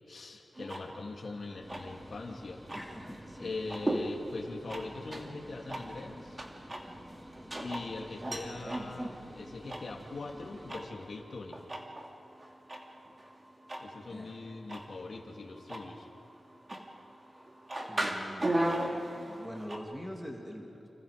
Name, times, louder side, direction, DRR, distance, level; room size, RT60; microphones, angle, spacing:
voice 1, 0.1-2.6 3.4-6.4 7.6-11.6 13.8-16.1, left 3 dB, 60° left, 0 dB, 2.6 m, -42 dB
sound 1, 0.5-19.8, right 1 dB, 30° right, 2.6 m, -38 dB
sound 2, 1.6-10.7, equal, 15° right, 3.9 m, -51 dB
voice 2, 2.7-3.6 14.1-14.4 17.8-20.9, equal, 5° left, 0 dB, 2.5 m, -44 dB
29.5 x 27.0 x 5.2 m, 2.7 s
wide cardioid pair, 80°, 0 cm